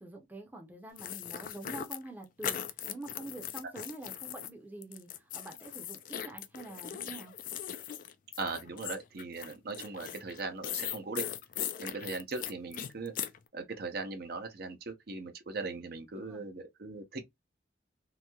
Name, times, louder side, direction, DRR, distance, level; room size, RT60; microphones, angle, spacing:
voice 1, 0.0-2.6 2.9-7.3 16.1-16.4, right 2 dB, 10° right, 0.6 m, -46 dB
sound 1, 1.0-4.5 4.8-13.4, left 10 dB, 45° left, 0.3 m, -39 dB
voice 2, 8.4-11.3 11.8-13.1 13.5-17.3, right 3 dB, 55° right, 0.6 m, -39 dB
3.0 x 2.7 x 2.2 m
head